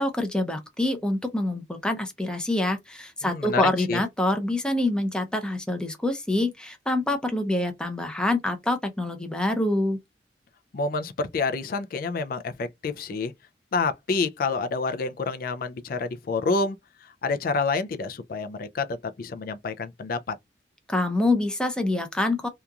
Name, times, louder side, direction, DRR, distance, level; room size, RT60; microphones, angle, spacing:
voice 1, 0.0-10.0 20.9-22.5, left 1 dB, 5° left, 0.5 m, -26 dB
voice 2, 3.2-4.0 10.7-13.3 13.7-16.8 17.0-20.4, left 4 dB, 50° left, 0.3 m, -28 dB
2.8 x 2.4 x 2.3 m
head